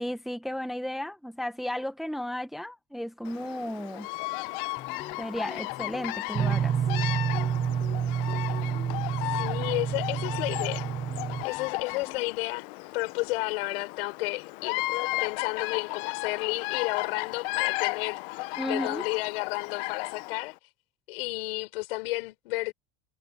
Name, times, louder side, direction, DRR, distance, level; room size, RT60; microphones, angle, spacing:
voice 1, 0.0-4.1 5.2-6.8 18.6-19.1, equal, ahead, 0.9 m, -34 dB
Bird vocalization bird call bird song, 3.2-20.5, left 22 dB, 65° left, 1.0 m, -35 dB
sound 1, 4.8-12.4, left 10 dB, 30° left, 3.2 m, -46 dB
sound 2, 6.3-11.4, right 8 dB, 20° right, 0.5 m, -29 dB
voice 2, 9.4-10.9 11.4-12.7 12.9-14.9 15.2-20.5 21.1-22.7, left 23 dB, 80° left, 4.9 m, -32 dB
supercardioid pair, 150°, 29 cm